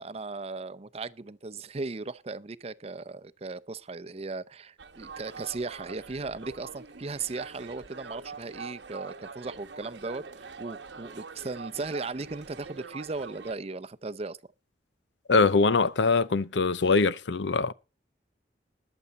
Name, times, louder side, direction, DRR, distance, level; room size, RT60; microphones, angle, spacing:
voice 1, 0.0-14.4, right 3 dB, 35° right, 0.6 m, -37 dB
sound 1, 4.8-13.5, right 4 dB, 85° right, 1.2 m, -44 dB
voice 2, 15.3-17.7, left 4 dB, 80° left, 0.6 m, -23 dB
20.5 x 7.0 x 4.1 m
head